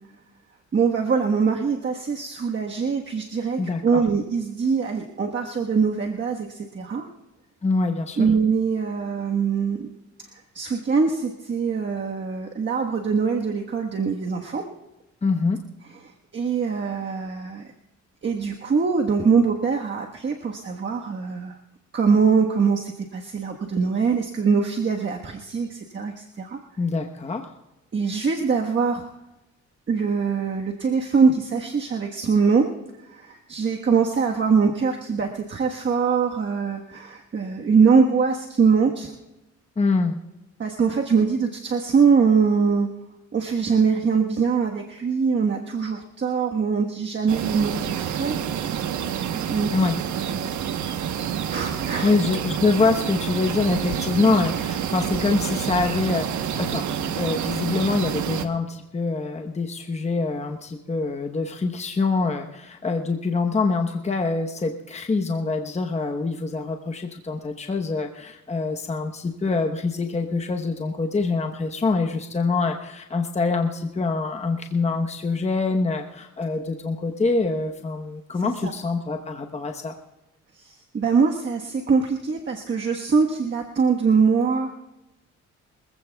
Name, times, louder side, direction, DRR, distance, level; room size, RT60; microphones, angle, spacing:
voice 1, 0.7-7.1 8.2-9.9 10.3-14.6 16.3-17.7 18.2-21.6 21.9-26.6 27.9-29.1 29.9-32.7 33.0-39.1 40.6-42.9 43.3-48.4 49.5-49.7 50.1-50.5 51.5-52.2 78.4-78.7 80.6-84.7, right 5 dB, 40° right, 1 dB, 1.4 m, -23 dB
voice 2, 3.6-4.0 7.6-8.3 15.2-15.6 26.8-27.5 39.8-40.2 49.7-50.0 52.0-79.9, left 3 dB, 20° left, 3 dB, 1.0 m, -25 dB
sound 1, 47.3-58.5, right 9 dB, 75° right, 1.1 m, -28 dB
24.5 x 15.5 x 2.3 m, 0.97 s
cardioid pair, 90°, 30 cm